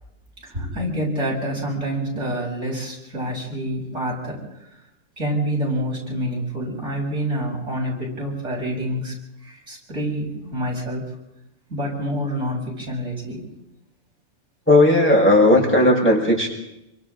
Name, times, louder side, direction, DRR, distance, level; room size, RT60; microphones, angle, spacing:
voice 1, 0.4-4.4 5.2-9.1 9.4-11.0 11.7-13.5, right 1 dB, 75° right, -3 dB, 7.4 m, -27 dB
voice 2, 14.7-16.5, left 1 dB, 10° left, -2 dB, 5.7 m, -15 dB
28.0 x 25.5 x 3.9 m, 0.89 s
omnidirectional pair, 1.2 m